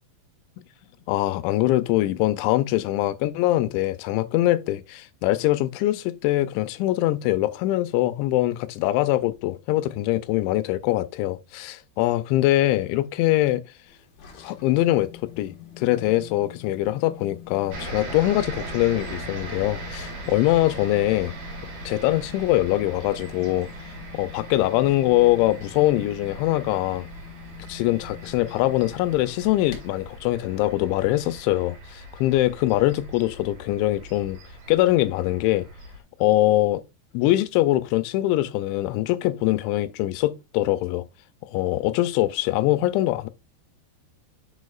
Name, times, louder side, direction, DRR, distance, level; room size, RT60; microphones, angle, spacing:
voice 1, 1.1-13.6 14.4-15.1 15.4-21.3 21.9-23.7 24.1-27.1 27.7-34.4 34.7-35.7 36.2-36.8 37.1-41.0 41.5-43.3, left 16 dB, 90° left, 2.9 m, -23 dB
sound 1, 13.9-30.2, left 10 dB, 55° left, 2.3 m, -45 dB
sound 2, 17.7-36.0, right 2 dB, 55° right, 3.2 m, -40 dB
6.8 x 6.4 x 2.3 m
omnidirectional pair, 5.2 m